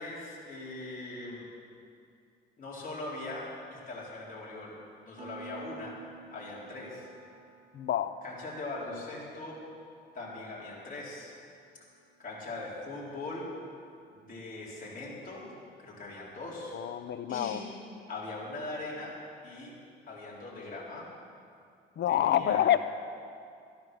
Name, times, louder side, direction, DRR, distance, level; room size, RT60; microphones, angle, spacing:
voice 1, 0.0-1.5 2.6-4.7 5.1-6.0 6.3-7.1 8.2-9.6 10.1-11.3 12.2-13.5 14.1-15.5 15.8-16.8 17.3-17.7 18.1-19.2 19.4-19.7 20.1-21.1 22.1-22.8, left 2 dB, 45° left, -5 dB, 4.1 m, -41 dB
Piano, 5.2-15.6, right 5 dB, 35° right, 2.4 m, -55 dB
voice 2, 7.7-8.1 16.7-17.6 22.0-22.8, left 11 dB, 60° left, 12 dB, 0.7 m, -27 dB
14.5 x 10.0 x 6.3 m, 2.4 s
cardioid pair, 90°, 20 cm